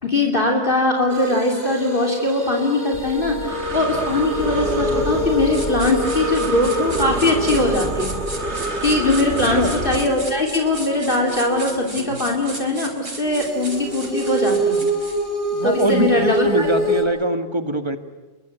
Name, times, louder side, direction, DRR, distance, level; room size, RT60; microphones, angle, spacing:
voice 1, 0.0-14.9 15.6-16.7, left 2 dB, 45° left, 2 dB, 3.2 m, -21 dB
sound 1, 1.1-12.6 13.2-17.0, right 1 dB, 40° right, 6.2 m, -26 dB
Breathing, 2.9-10.0, right 2 dB, 60° right, 2.1 m, -28 dB
sound 2, 5.5-15.3, right 2 dB, 75° right, 5.0 m, -35 dB
voice 2, 15.5-18.0, right 1 dB, 20° right, 7 dB, 2.0 m, -23 dB
28.0 x 23.5 x 8.3 m, 1.2 s
omnidirectional pair, 1.3 m